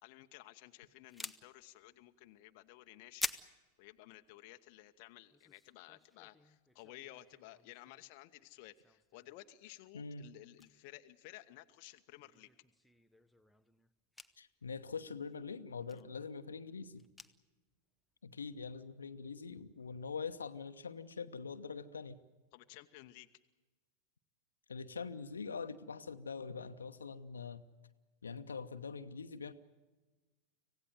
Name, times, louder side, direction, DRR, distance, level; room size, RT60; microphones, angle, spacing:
voice 1, 0.0-3.3 3.8-12.5 15.9-16.1 22.5-23.3, left 16 dB, 45° left, 7 dB, 0.9 m, -55 dB
sound 1, 1.0-8.2 8.5-9.5 9.8-10.0 10.3-10.8 11.1-11.2 11.6-11.7 12.1-17.7 18.1-18.2 18.6-18.7 19.0-19.8, left 2 dB, 5° left, 0.8 m, -49 dB
voice 2, 9.9-10.3 14.4-17.0 18.2-22.2 24.7-27.6 28.2-29.5, left 5 dB, 70° left, 9 dB, 1.0 m, -44 dB
26.0 x 17.0 x 9.3 m, 1.2 s
figure-of-eight pair, 90°, 0 cm